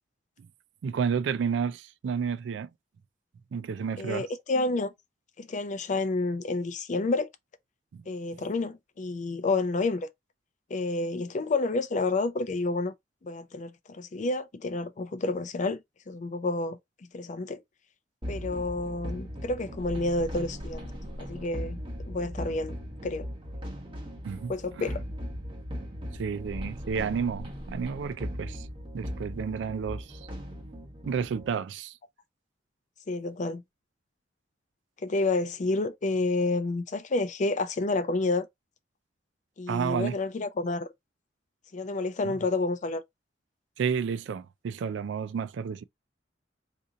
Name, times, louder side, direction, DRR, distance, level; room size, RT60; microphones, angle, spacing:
voice 1, 0.8-2.7 3.5-4.3 7.9-8.1 24.2-24.5 26.2-28.7 28.9-30.3 31.1-32.0 39.7-40.2 42.2-42.4 43.8-45.8, right 6 dB, 70° right, 0.3 m, -31 dB
voice 2, 4.0-4.9 5.4-7.3 8.1-10.1 10.7-12.9 13.2-15.8 16.1-16.8 17.1-17.6 18.3-20.9 21.2-22.8 23.0-23.3 24.5-25.0 33.1-33.6 35.0-38.5 39.6-40.9 41.7-43.0, left 3 dB, 40° left, 0.5 m, -29 dB
sound 1, 18.2-31.5, equal, 30° right, 1.1 m, -38 dB
2.8 x 2.5 x 3.7 m
head